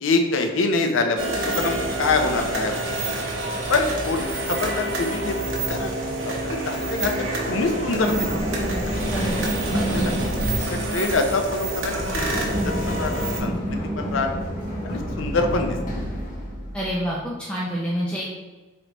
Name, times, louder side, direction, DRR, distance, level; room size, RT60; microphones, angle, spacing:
voice 1, 0.0-2.9 3.7-5.9 6.3-8.3 8.9-10.2 10.7-13.5 14.0-14.4 14.8-15.8, left 3 dB, 75° left, 5 dB, 0.5 m, -25 dB
sound 1, 1.2-13.4, right 2 dB, 75° right, 0.8 m, -28 dB
Run, 7.5-17.2, equal, 40° left, 0.9 m, -29 dB
voice 2, 9.0-10.2 16.7-18.3, equal, 5° left, -6 dB, 0.4 m, -28 dB
3.2 x 3.1 x 3.8 m, 1.2 s
head